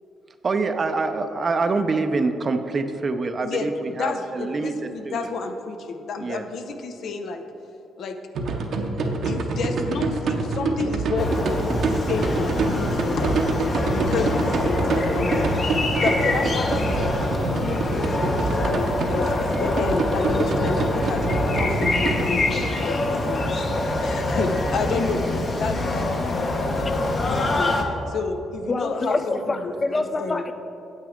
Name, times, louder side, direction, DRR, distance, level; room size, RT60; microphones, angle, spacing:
voice 1, 0.4-5.3 6.2-6.5, right 3 dB, 40° right, 8 dB, 0.5 m, -25 dB
voice 2, 3.4-7.4 8.0-8.2 9.2-11.3 11.8-15.6 16.0-17.0 17.4-19.3 19.6-21.3 21.5-23.6 24.0-26.3 26.6-26.9 27.2-27.8 28.1-29.7 30.2-30.4, left 4 dB, 65° left, 7 dB, 0.6 m, -30 dB
sound 1, 8.3-22.2, right 3 dB, 65° right, 0.8 m, -26 dB
sound 2, 11.2-27.8, left 2 dB, 40° left, 0.9 m, -25 dB
voice 3, 28.7-30.5, left 2 dB, 25° left, 9 dB, 0.5 m, -26 dB
9.0 x 8.0 x 3.7 m, 2.9 s
cardioid pair, 90°, 0 cm